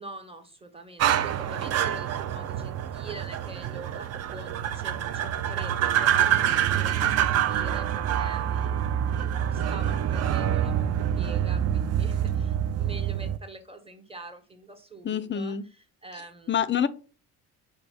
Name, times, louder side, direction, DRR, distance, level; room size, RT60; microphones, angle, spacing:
voice 1, 0.0-8.9 9.5-16.7, right 2 dB, 15° right, 1.1 m, -45 dB
sound 1, 1.0-13.4, right 10 dB, 35° right, 0.4 m, -26 dB
voice 2, 15.0-15.7 16.5-16.9, left 8 dB, 25° left, 0.4 m, -26 dB
4.9 x 2.3 x 4.6 m
hypercardioid pair, 55°, 45 cm